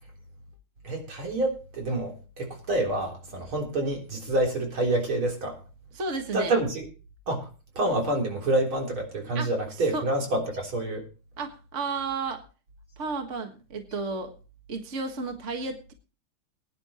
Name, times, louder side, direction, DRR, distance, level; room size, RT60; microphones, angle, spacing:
voice 1, 0.8-5.6 6.3-6.8 7.3-7.5 7.8-11.0, right 2 dB, 80° right, 0 dB, 4.4 m, -27 dB
voice 2, 5.9-6.5 9.3-9.5 9.9-10.1 11.4-12.4 13.0-14.3 14.7-15.9, right 3 dB, 35° right, 5 dB, 1.8 m, -32 dB
21.5 x 10.0 x 3.0 m, 0.34 s
omnidirectional pair, 2.2 m